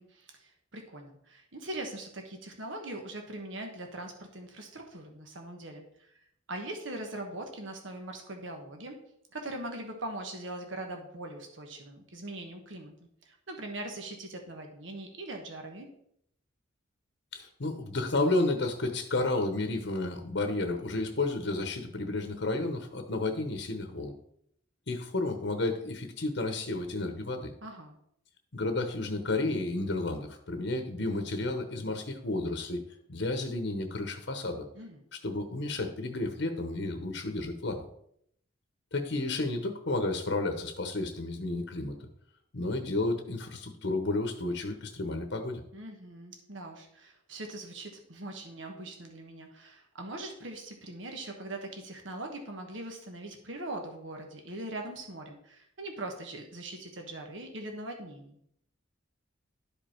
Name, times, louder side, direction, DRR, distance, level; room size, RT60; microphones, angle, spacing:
voice 1, 0.0-6.1 6.5-9.0 9.3-12.9 13.2-15.9 27.6-27.9 34.7-35.0 45.7-58.4, right 1 dB, 70° right, 3 dB, 1.4 m, -41 dB
voice 2, 17.3-24.1 24.9-27.5 28.5-32.8 33.1-34.6 35.1-37.8 38.9-41.9 42.5-45.6, left 2 dB, 65° left, 6 dB, 1.0 m, -32 dB
12.0 x 5.2 x 4.5 m, 0.71 s
head